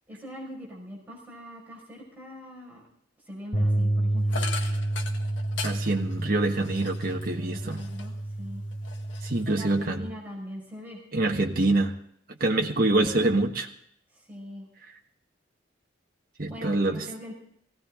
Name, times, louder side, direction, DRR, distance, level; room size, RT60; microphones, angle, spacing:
voice 1, 0.1-2.8 3.3-4.4 7.1-8.6 9.5-11.0 12.5-12.6 14.3-14.7 16.5-17.3, equal, 10° right, -4 dB, 5.4 m, -42 dB
sound 1, 3.5-9.8, right 1 dB, 40° left, 3.9 m, -29 dB
sound 2, 4.3-8.3 8.7-9.8, left 5 dB, 80° left, 1.6 m, -40 dB
voice 2, 5.6-7.8 9.2-10.0 11.1-11.9 12.3-13.7 16.4-17.1, right 2 dB, 50° right, 2 dB, 1.4 m, -25 dB
18.0 x 17.0 x 3.7 m, 0.70 s
head